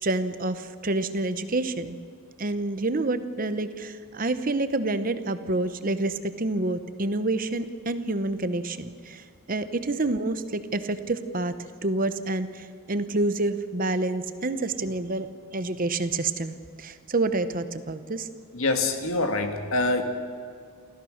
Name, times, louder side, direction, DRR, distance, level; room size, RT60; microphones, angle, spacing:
voice 1, 0.0-2.0 2.4-11.5 11.8-15.3 15.5-18.3, right 2 dB, 40° right, 11 dB, 0.9 m, -28 dB
voice 2, 18.5-20.0, left 2 dB, 65° left, 5 dB, 2.1 m, -25 dB
29.0 x 14.0 x 6.5 m, 2.2 s
head